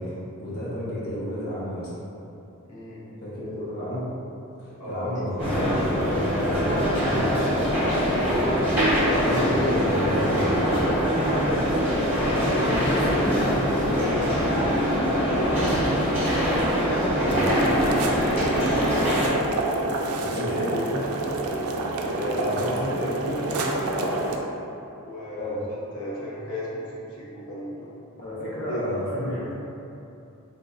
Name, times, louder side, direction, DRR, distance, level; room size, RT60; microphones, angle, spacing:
voice 1, 0.0-2.0 3.2-4.1 4.6-8.6 9.0-11.0 17.2-17.4 20.2-20.7 22.5-22.9 25.3-25.7 28.2-29.5, equal, 45° left, -8 dB, 0.7 m, -32 dB
voice 2, 2.6-3.0 4.8-5.2 12.1-15.9 16.6-18.8 19.5-19.7 20.3-21.0 22.0-24.4 25.0-27.9 28.7-28.8, left 1 dB, 90° left, -7 dB, 0.9 m, -34 dB
sound 1, 5.4-19.3, equal, 10° right, 1.1 m, -23 dB
sound 2, 17.3-24.4, right 2 dB, 70° right, 0.3 m, -28 dB
3.7 x 2.9 x 2.5 m, 2.8 s
head